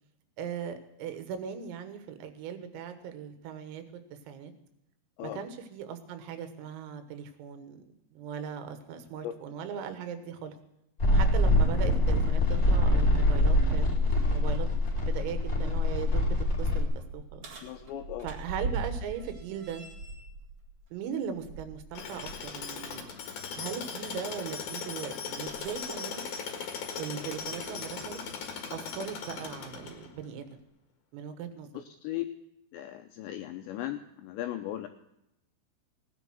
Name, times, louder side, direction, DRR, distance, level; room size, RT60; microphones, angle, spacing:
voice 1, 0.4-4.5 5.2-7.8 8.1-10.6 11.1-13.9 14.3-14.7 15.0-17.5 18.2-19.8 20.9-23.1 23.6-26.3 27.0-28.2 28.7-30.5 31.1-31.7, right 7 dB, 90° right, 9 dB, 4.1 m, -39 dB
sound 1, 11.0-16.8, left 1 dB, 20° left, 2.0 m, -24 dB
sound 2, 16.8-22.4 22.8-23.0 25.4-27.9 28.9-29.0 29.8-29.9, right 3 dB, 50° right, 1.5 m, -41 dB
voice 2, 17.6-18.3 31.7-32.3 32.7-34.9, left 13 dB, 85° left, 6 dB, 2.5 m, -37 dB
Tools, 21.9-30.2, left 6 dB, 60° left, 2.2 m, -38 dB
17.5 x 10.0 x 6.2 m, 0.84 s
omnidirectional pair, 5.9 m